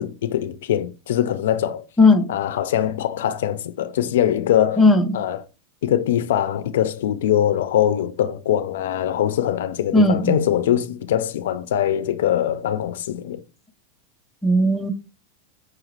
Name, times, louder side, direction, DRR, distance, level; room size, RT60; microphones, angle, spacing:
voice 1, 0.0-1.8 2.3-4.8 5.1-5.4 5.8-13.4, left 10 dB, 80° left, 0.4 m, -22 dB
voice 2, 2.0-2.3 4.8-5.2 9.9-10.3 14.4-14.9, left 2 dB, 5° left, 0.5 m, -16 dB
5.6 x 2.4 x 3.1 m
supercardioid pair, 155°, 0 cm